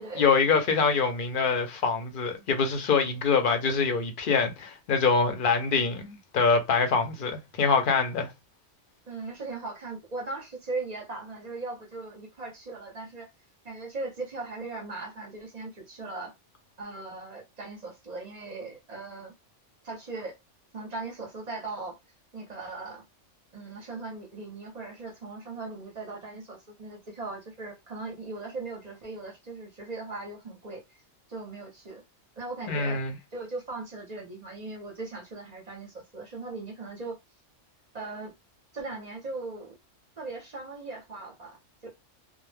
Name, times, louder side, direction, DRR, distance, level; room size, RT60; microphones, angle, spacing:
voice 1, 0.0-8.3 32.7-33.1, left 5 dB, 55° left, 0.7 m, -25 dB
voice 2, 9.1-13.3 13.6-16.3 16.8-19.3 19.8-20.4 20.7-22.0 22.3-23.1 23.5-31.0 31.3-32.0 32.4-33.0 33.3-37.2 37.9-38.3 38.7-39.8 40.2-41.6 41.8-41.9, right 3 dB, 45° right, 0.6 m, -38 dB
2.2 x 2.0 x 3.2 m
omnidirectional pair, 1.2 m